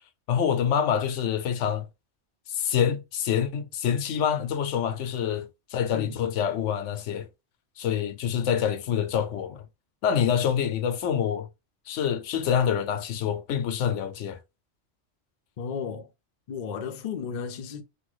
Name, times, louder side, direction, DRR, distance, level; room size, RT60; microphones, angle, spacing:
voice 1, 0.3-1.9 2.5-7.3 7.8-9.6 10.0-11.5 11.9-14.4, left 8 dB, 90° left, 0.9 m, -26 dB
voice 2, 15.6-16.1 16.5-17.8, left 6 dB, 55° left, 0.5 m, -34 dB
3.3 x 2.2 x 3.1 m
omnidirectional pair, 1.2 m